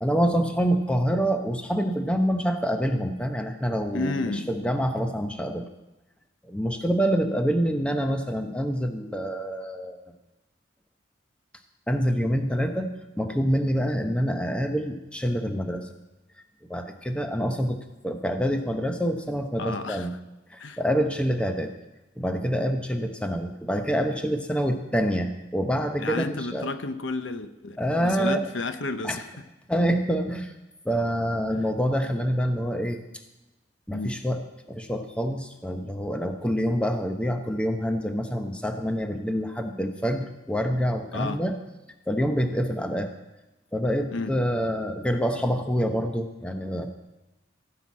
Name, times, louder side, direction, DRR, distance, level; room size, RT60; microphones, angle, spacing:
voice 1, 0.0-5.7 6.4-10.0 11.9-12.9 13.2-15.9 16.7-17.8 18.0-20.1 20.5-21.7 22.2-26.7 27.8-28.4 29.0-29.2 29.7-30.5 30.8-33.0 33.9-41.6 42.1-43.1 43.7-46.9, equal, 5° left, 5 dB, 0.8 m, -26 dB
voice 2, 3.9-4.5 19.6-20.1 20.6-20.8 26.0-29.2 33.9-34.1 41.1-41.4 44.1-44.3, left 3 dB, 75° left, 10 dB, 0.8 m, -31 dB
16.5 x 5.9 x 8.4 m, 1.0 s
head